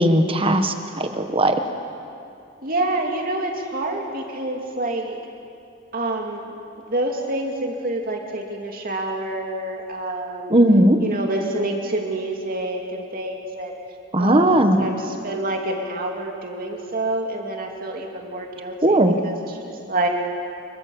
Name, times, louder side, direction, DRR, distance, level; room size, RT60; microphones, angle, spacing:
voice 1, 0.0-1.5 10.5-11.0 14.1-14.9 18.8-19.2, right 1 dB, 25° right, 6 dB, 1.5 m, -17 dB
voice 2, 2.6-5.2 5.9-6.5 6.9-10.6 11.0-13.7 14.2-20.1, right 2 dB, 45° right, 1 dB, 2.6 m, -27 dB
26.0 x 23.5 x 7.2 m, 2.6 s
head